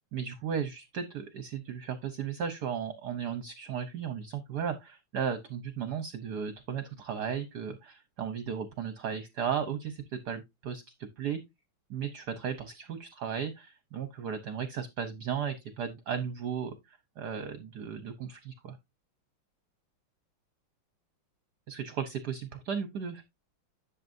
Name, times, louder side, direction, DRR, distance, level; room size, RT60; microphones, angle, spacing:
voice 1, 0.1-11.4 11.9-18.8 21.7-23.2, right 7 dB, 60° right, 1.4 m, -35 dB
11.0 x 6.9 x 2.6 m
omnidirectional pair, 2.3 m